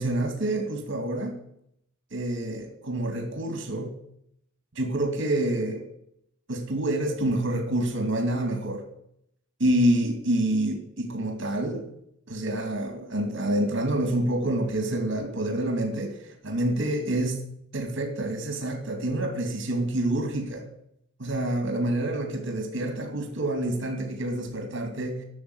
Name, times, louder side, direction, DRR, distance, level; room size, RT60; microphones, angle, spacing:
voice 1, 0.0-1.4 2.1-3.9 4.7-5.8 6.5-8.9 9.6-11.9 12.3-17.4 17.7-20.7 21.2-25.2, right 1 dB, 60° right, 5 dB, 2.5 m, -27 dB
12.5 x 7.0 x 9.7 m, 0.72 s
head